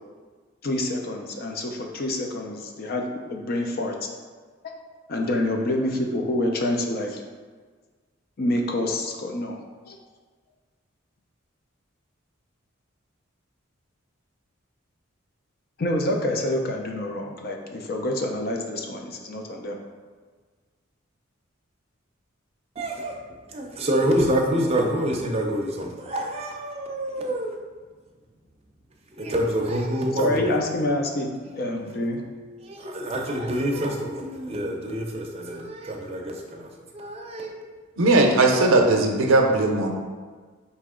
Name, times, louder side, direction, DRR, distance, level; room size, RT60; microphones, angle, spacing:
voice 1, 0.6-4.0 5.1-7.2 8.4-9.6 9.9-10.0 15.8-19.8 30.2-32.3, left 1 dB, 50° left, 2 dB, 0.5 m, -27 dB
voice 2, 22.8-23.1 23.5-27.5 29.1-30.7 32.6-37.7, right 1 dB, 30° right, 0 dB, 0.5 m, -27 dB
voice 3, 38.0-39.9, right 2 dB, 85° right, 3 dB, 0.6 m, -18 dB
4.2 x 2.9 x 3.6 m, 1.5 s
head